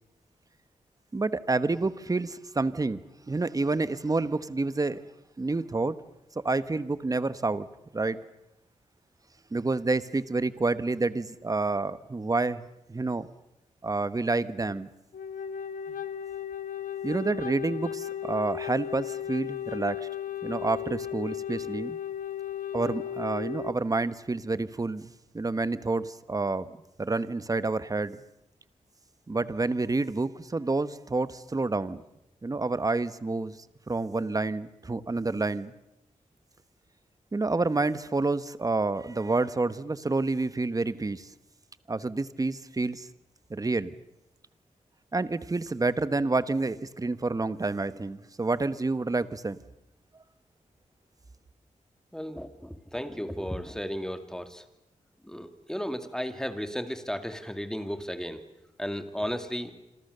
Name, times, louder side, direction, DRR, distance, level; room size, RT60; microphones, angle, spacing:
voice 1, 1.1-3.0 3.3-5.0 5.4-6.0 6.3-7.7 7.9-8.2 9.5-13.3 13.8-14.9 17.0-20.1 20.4-22.0 22.7-26.7 27.0-28.2 29.3-32.0 32.4-33.6 33.9-35.7 37.3-41.3 41.9-43.1 43.5-43.9 45.1-49.6, right 3 dB, 25° right, 14 dB, 1.2 m, -28 dB
Wind instrument woodwind instrument, 15.1-23.8, left 10 dB, 80° left, 1.4 m, -35 dB
voice 2, 52.1-54.6 55.2-58.4 58.8-59.7, equal, 5° left, 8 dB, 2.4 m, -34 dB
27.5 x 26.5 x 6.8 m, 0.87 s
wide cardioid pair, 100°, 14 cm